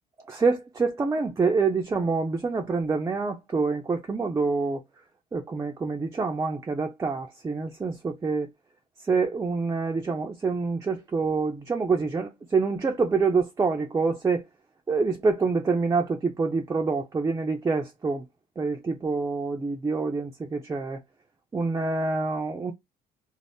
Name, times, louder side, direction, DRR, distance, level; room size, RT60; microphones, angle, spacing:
voice 1, 0.3-4.8 5.3-8.5 9.1-14.4 14.9-18.2 18.6-21.0 21.5-22.7, right 4 dB, 20° right, 0.5 m, -26 dB
2.6 x 2.0 x 3.4 m
cardioid pair, 110°, 17 cm